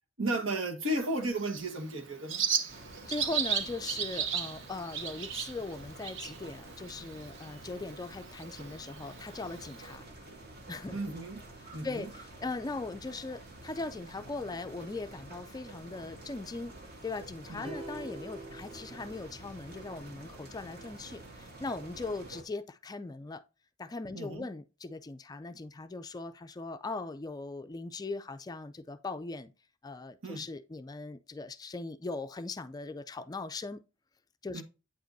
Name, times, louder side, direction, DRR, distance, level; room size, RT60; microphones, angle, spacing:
voice 1, 0.2-2.4 10.9-11.4 11.7-12.1 17.5-17.8 24.1-24.5 30.2-30.4 34.5-34.6, right 1 dB, 85° right, 1.4 m, -34 dB
Bird, 1.0-10.0, right 7 dB, 65° right, 0.8 m, -37 dB
voice 2, 2.6-10.1 10.7-11.0 11.8-16.7 17.0-23.4 23.8-29.5 29.8-33.8 34.4-34.6, left 3 dB, 20° left, 0.3 m, -40 dB
sound 1, 2.7-22.4, right 2 dB, 50° right, 1.7 m, -49 dB
sound 2, 17.6-20.0, right 1 dB, 25° right, 0.7 m, -45 dB
8.6 x 5.1 x 2.6 m
head